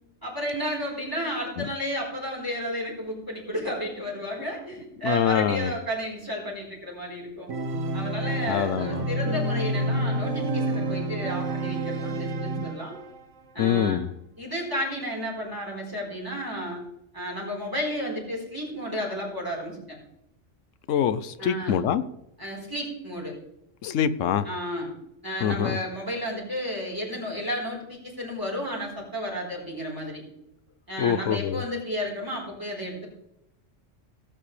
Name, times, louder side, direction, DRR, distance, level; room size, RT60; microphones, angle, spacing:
voice 1, 0.2-7.5 7.9-12.9 13.5-14.0 14.4-16.8 17.1-20.0 21.4-21.8 22.4-23.3 24.4-24.9 25.2-30.2 30.9-33.1, equal, 15° right, -3 dB, 4.2 m, -32 dB
voice 2, 5.0-5.7 8.5-9.0 13.6-14.1 20.9-22.0 23.8-24.5 25.4-25.8 31.0-31.6, left 9 dB, 85° left, 14 dB, 1.0 m, -24 dB
Organ, 7.5-13.2, right 1 dB, 80° right, 1.5 m, -28 dB
17.5 x 8.9 x 3.3 m, 0.83 s
omnidirectional pair, 1.3 m